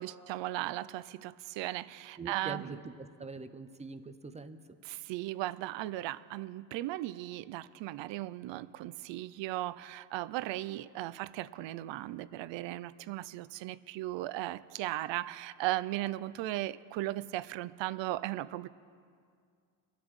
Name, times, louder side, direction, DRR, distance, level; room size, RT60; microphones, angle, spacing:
voice 1, 0.0-2.7 4.8-18.7, right 16 dB, 75° right, 17 dB, 0.5 m, -37 dB
voice 2, 2.2-2.9 3.2-4.6, right 4 dB, 15° right, 10 dB, 0.6 m, -43 dB
23.5 x 12.0 x 3.2 m, 2.3 s
cardioid pair, 120°, 45 cm